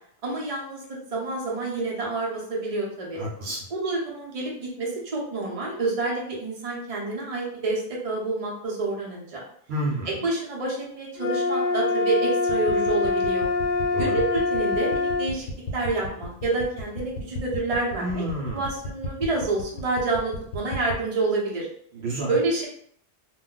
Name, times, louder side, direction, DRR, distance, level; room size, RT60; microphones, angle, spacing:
voice 1, 0.2-0.8 1.1-3.2 3.7-9.4 10.0-13.5 14.0-18.2 18.5-21.7 22.3-22.7, right 3 dB, 35° right, -3 dB, 0.7 m, -28 dB
voice 2, 3.2-3.6 9.7-10.1 13.9-14.2 18.0-18.6 22.0-22.3, right 1 dB, 70° right, -2 dB, 0.8 m, -29 dB
sound 1, 11.2-15.3, left 3 dB, 55° left, 0.6 m, -24 dB
sound 2, 12.5-21.0, left 1 dB, 75° left, 0.9 m, -34 dB
2.3 x 2.1 x 3.7 m, 0.63 s
omnidirectional pair, 1.2 m